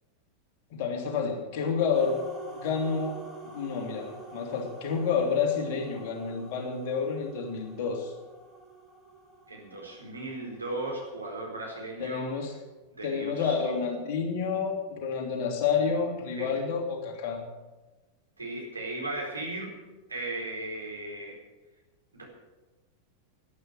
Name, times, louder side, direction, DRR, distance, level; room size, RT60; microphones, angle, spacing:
voice 1, 0.7-2.2 2.5-8.1 12.0-12.5 13.0-17.4, left 6 dB, 45° left, 2 dB, 2.9 m, -29 dB
sound 1, 1.9-11.0, right 2 dB, 10° right, 3.2 m, -47 dB
voice 2, 9.5-12.3 13.0-13.6 16.3-16.5 18.4-19.7 20.1-21.3 22.1-22.3, right 2 dB, 80° right, -1 dB, 4.3 m, -36 dB
11.5 x 10.5 x 8.0 m, 1.2 s
figure-of-eight pair, 90°, 0 cm